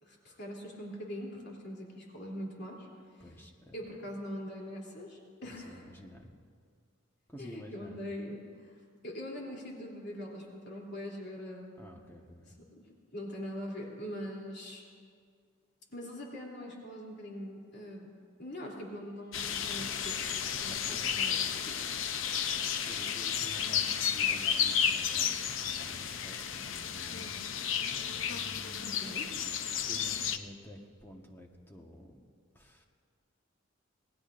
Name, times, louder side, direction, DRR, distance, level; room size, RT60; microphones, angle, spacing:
voice 1, 0.0-2.9 3.7-5.9 7.4-8.7 9.0-11.7 12.6-12.8 13.1-14.8 15.9-18.1 18.4-22.0 28.8-29.4, equal, 55° left, -2 dB, 3.2 m, -42 dB
voice 2, 3.2-3.8 5.4-6.3 7.3-8.0 11.8-12.5 20.6-21.0 22.8-27.4 28.3-29.0 29.8-32.3 32.5-32.9, left 1 dB, 10° left, 1 dB, 1.3 m, -50 dB
sound 1, 19.3-30.4, left 8 dB, 75° left, 0.7 m, -32 dB
27.5 x 18.5 x 2.6 m, 2.1 s
head